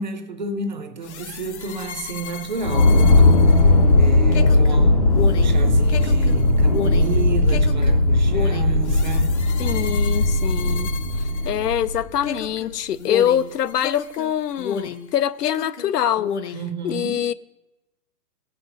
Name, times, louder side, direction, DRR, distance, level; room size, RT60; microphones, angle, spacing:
voice 1, 0.0-9.3 16.5-17.2, right 5 dB, 30° right, 0.5 m, -31 dB
sound 1, 1.0-11.9 12.2-15.1 15.4-16.7, left 6 dB, 45° left, 0.8 m, -33 dB
sound 2, 2.6-12.2, left 2 dB, 25° left, 0.5 m, -17 dB
voice 2, 9.6-10.9 11.4-16.3 16.8-17.3, left 10 dB, 75° left, 0.7 m, -24 dB
15.5 x 6.1 x 7.9 m
hypercardioid pair, 165°, 48 cm